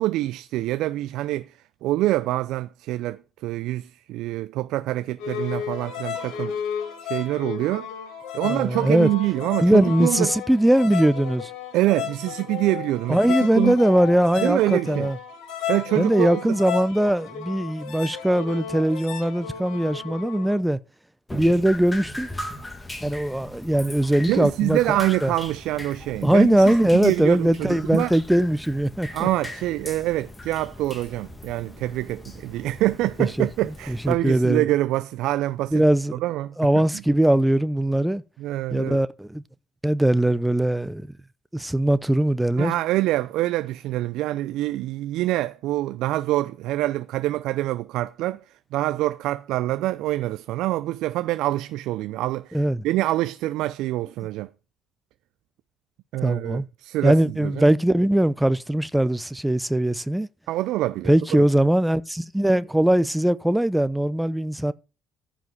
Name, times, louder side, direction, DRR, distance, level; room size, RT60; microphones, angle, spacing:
voice 1, 0.0-6.6 7.0-7.9 8.3-10.3 11.7-13.8 14.4-15.1 15.7-16.6 24.3-26.7 27.0-28.1 29.1-35.8 36.1-36.8 38.4-39.0 42.6-48.4 48.7-54.5 56.1-57.7 60.5-61.1 61.4-61.5, right 16 dB, 65° right, 0.6 m, -25 dB
sound 1, 5.2-20.6, left 8 dB, 65° left, 2.9 m, -33 dB
voice 2, 8.4-9.1 9.6-11.5 13.1-15.2 16.0-20.8 21.3-22.3 23.0-25.0 25.2-25.3 26.2-29.3 33.2-33.5 33.9-34.7 35.7-36.2 36.6-38.2 38.7-39.4 39.8-41.1 41.5-42.7 52.5-52.8 56.2-56.7 57.0-60.3 61.0-64.7, right 1 dB, 5° right, 0.8 m, -21 dB
Drip, 21.3-34.1, left 1 dB, 15° left, 2.2 m, -39 dB
14.5 x 5.1 x 6.6 m
hypercardioid pair, 55°, 0 cm